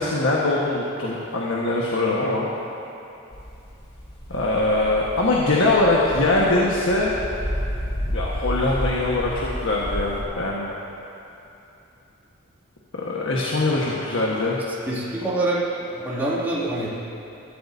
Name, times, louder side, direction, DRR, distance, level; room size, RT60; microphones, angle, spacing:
voice 1, 0.0-2.5 4.3-7.1 8.1-10.7 12.9-14.6, left 2 dB, 70° left, -4 dB, 1.5 m, -22 dB
sound 1, 3.3-10.2, equal, 30° left, 3.3 m, -31 dB
voice 2, 14.9-15.6 15.9-16.9, right 2 dB, 10° right, -9 dB, 2.5 m, -25 dB
22.5 x 13.0 x 2.8 m, 2.9 s
head